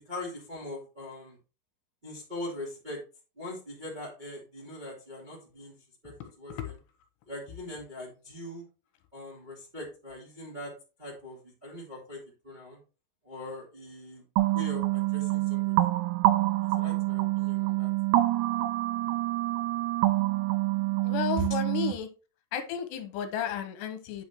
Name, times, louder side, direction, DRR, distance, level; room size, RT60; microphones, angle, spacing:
voice 1, 0.1-1.4 2.0-3.0 3.3-5.8 6.0-6.8 7.3-8.6 9.1-10.7 11.0-12.8 13.2-14.2 14.5-15.9 16.8-17.9 21.4-21.5, left 1 dB, 20° right, -4 dB, 1.5 m, -41 dB
sound 1, 14.4-21.9, right 17 dB, 85° right, 2.8 m, -26 dB
voice 2, 21.0-22.1 22.5-24.2, left 8 dB, 85° left, 7 dB, 3.0 m, -33 dB
9.4 x 5.6 x 3.0 m, 0.33 s
omnidirectional pair, 4.9 m